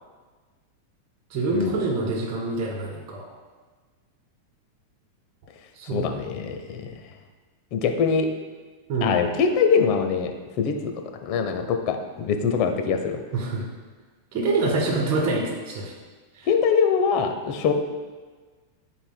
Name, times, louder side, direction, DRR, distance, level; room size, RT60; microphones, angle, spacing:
voice 1, 1.3-3.3 5.7-6.0 8.9-9.1 13.3-13.7 14.3-15.9 16.4-16.5, right 3 dB, 45° right, -2 dB, 1.9 m, -26 dB
voice 2, 5.9-6.9 7.7-8.3 9.0-10.9 11.2-13.2 16.5-17.7, left 6 dB, 50° left, 5 dB, 0.8 m, -23 dB
12.0 x 4.5 x 2.2 m, 1.4 s
hypercardioid pair, 125°, 0 cm